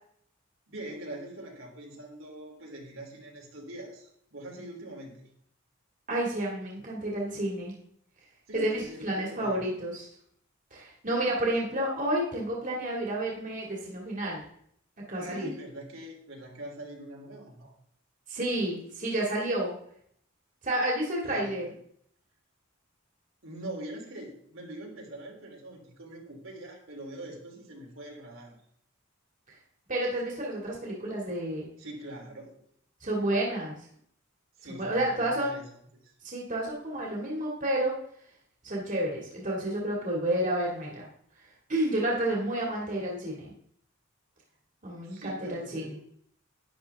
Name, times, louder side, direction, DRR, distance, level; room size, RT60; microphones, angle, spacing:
voice 1, 0.7-5.2 8.5-9.7 15.2-17.7 21.2-21.6 23.4-28.6 31.8-32.6 34.6-35.6 35.9-36.1 45.0-45.9, right 1 dB, 80° right, -1 dB, 3.2 m, -43 dB
voice 2, 6.1-7.7 8.5-10.1 10.7-14.4 15.1-15.5 18.3-19.8 20.6-21.7 29.9-31.7 33.0-33.8 34.6-35.6 36.2-37.9 38.6-41.1 41.4-43.5 44.8-46.0, right 1 dB, 40° right, -3 dB, 2.2 m, -30 dB
11.5 x 10.0 x 3.5 m, 0.68 s
head